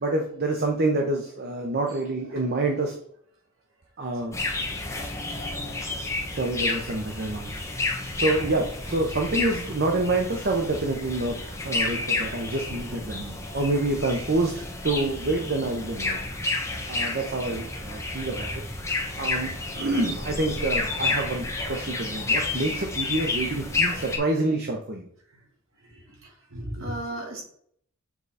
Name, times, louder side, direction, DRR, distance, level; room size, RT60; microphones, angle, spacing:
voice 1, 0.0-3.0 4.0-4.3 6.3-7.6 8.1-16.2 16.9-18.6 19.2-25.1, right 2 dB, 50° right, 2 dB, 0.9 m, -27 dB
sound 1, 4.3-24.2, left 3 dB, 15° left, 1.1 m, -30 dB
voice 2, 25.8-27.4, right 1 dB, 65° right, 0 dB, 2.1 m, -36 dB
7.2 x 3.9 x 4.1 m, 0.64 s
head